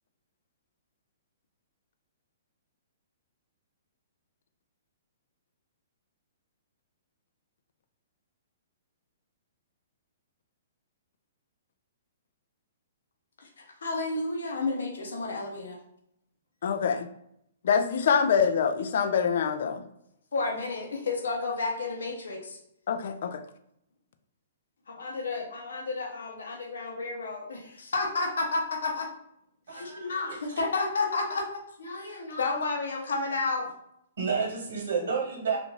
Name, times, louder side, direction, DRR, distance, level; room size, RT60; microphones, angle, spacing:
voice 1, 13.4-15.8 20.3-22.6 24.9-29.1 29.7-31.5 31.8-33.7, left 3 dB, 85° left, 2 dB, 0.7 m, -31 dB
voice 2, 16.6-17.1 17.6-19.8 22.9-23.4, left 6 dB, 65° left, 9 dB, 0.3 m, -25 dB
voice 3, 29.7-30.4 34.2-35.6, right 5 dB, 70° right, -1 dB, 1.2 m, -30 dB
2.4 x 2.4 x 3.1 m, 0.75 s
hypercardioid pair, 145°, 0 cm